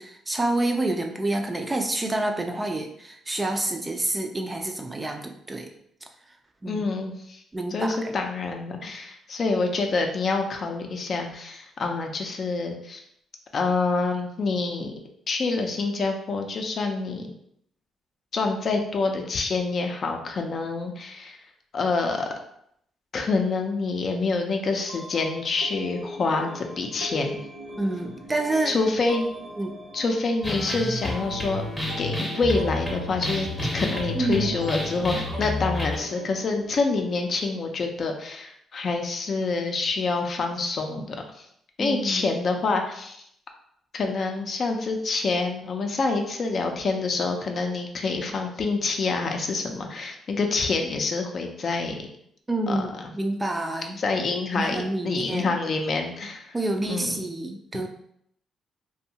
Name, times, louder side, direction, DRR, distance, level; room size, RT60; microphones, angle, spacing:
voice 1, 0.0-5.7 6.6-6.8 7.5-8.1 27.8-28.7 29.6-29.8 34.1-34.5 41.8-42.3 52.5-54.0 54.5-55.6 56.5-57.9, right 2 dB, 20° right, 3 dB, 0.4 m, -28 dB
voice 2, 6.7-7.4 7.7-13.0 13.5-14.9 15.3-17.3 18.3-21.4 21.7-22.3 23.1-27.4 28.7-29.2 29.9-31.6 32.0-33.5 33.7-41.5 41.8-43.2 43.9-52.0 52.7-53.1 54.0-56.6 56.9-57.2, left 3 dB, 50° left, 3 dB, 0.4 m, -27 dB
sound 1, 24.9-37.5, right 1 dB, 85° right, 0.6 m, -40 dB
sound 2, 30.4-36.0, left 2 dB, 10° left, 0.7 m, -30 dB
2.6 x 2.2 x 2.8 m, 0.71 s
cardioid pair, 90°, 0 cm